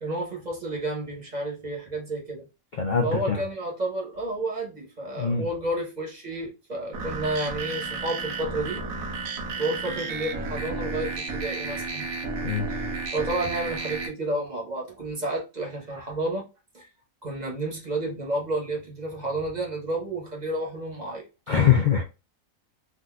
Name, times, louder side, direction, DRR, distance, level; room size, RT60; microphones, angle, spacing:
voice 1, 0.0-2.5 3.0-8.8 9.6-12.1 12.7-12.8 13.1-16.4 16.7-16.9 17.2-21.2, right 1 dB, 35° right, 1.1 m, -31 dB
voice 2, 2.8-3.4 5.2-5.5 12.4-12.7 21.5-22.0, left 7 dB, 70° left, 0.4 m, -22 dB
sound 1, 6.9-14.1, right 3 dB, 90° right, 1.2 m, -32 dB
3.7 x 2.5 x 2.3 m
omnidirectional pair, 1.4 m